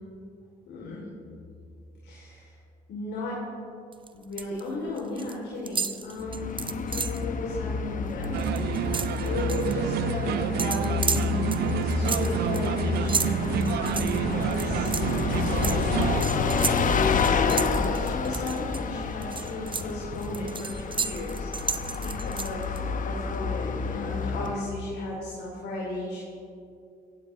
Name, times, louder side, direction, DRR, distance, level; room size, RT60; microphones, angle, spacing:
voice 1, 0.7-1.1 2.0-2.5 2.9-3.5 4.1-26.2, left 2 dB, 65° left, -4 dB, 3.2 m, -35 dB
sound 1, 3.9-4.6 4.9-5.4 5.7-7.2 7.7-7.8 8.1-9.7 10.6-18.8 19.2-22.8, right 5 dB, 25° right, 0.8 m, -33 dB
Bus, 6.2-24.8, left 5 dB, 45° left, 1.0 m, -29 dB
sound 2, 8.3-16.2, right 13 dB, 60° right, 0.4 m, -30 dB
16.0 x 16.0 x 3.2 m, 2.5 s
hypercardioid pair, 55°, 19 cm